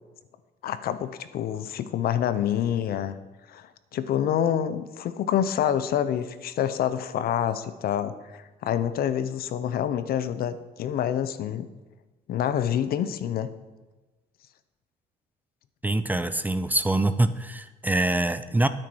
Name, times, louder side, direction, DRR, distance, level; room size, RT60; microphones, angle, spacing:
voice 1, 0.6-3.2 3.5-11.7 12.3-13.5, left 10 dB, 65° left, 13 dB, 0.8 m, -27 dB
voice 2, 15.8-18.7, right 2 dB, 10° right, 12 dB, 0.5 m, -24 dB
9.3 x 8.8 x 6.2 m, 1.2 s
cardioid pair, 110°, 17 cm